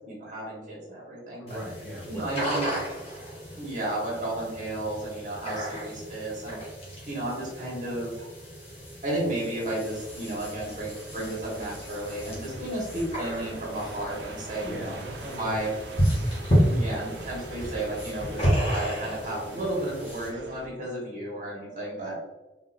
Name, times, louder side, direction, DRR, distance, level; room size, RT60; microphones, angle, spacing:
voice 1, 0.0-1.6 2.1-2.7 3.6-6.6 7.1-8.1 9.0-14.9 15.3-15.7 16.6-22.2, right 1 dB, 45° right, -4 dB, 1.4 m, -33 dB
voice 2, 1.4-2.4 2.7-2.9 12.2-12.5 14.6-15.6 15.9-16.0, equal, 10° left, -7 dB, 1.3 m, -40 dB
sound 1, 1.5-20.3, equal, 35° left, 1.4 m, -32 dB
sound 2, 9.9-20.7, right 2 dB, 75° right, 0.6 m, -44 dB
3.8 x 3.5 x 2.6 m, 1.1 s
head